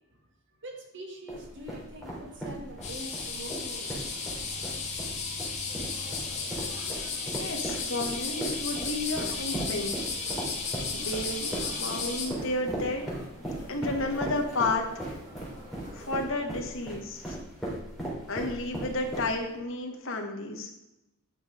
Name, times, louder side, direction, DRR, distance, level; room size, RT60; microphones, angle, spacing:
voice 1, 0.6-4.5 6.3-6.5, right 1 dB, 60° right, 2 dB, 1.8 m, -45 dB
sound 1, 1.3-19.6, right 1 dB, ahead, 3.1 m, -37 dB
sound 2, 2.8-12.3, left 4 dB, 35° left, 1.9 m, -34 dB
sound 3, 5.7-16.1, equal, 35° right, 3.3 m, -48 dB
voice 2, 7.4-9.9 10.9-11.5 11.8-13.0 13.7-14.9 15.9-17.4 18.3-20.7, left 2 dB, 65° left, 2 dB, 1.6 m, -32 dB
9.9 x 5.8 x 4.9 m, 0.92 s
head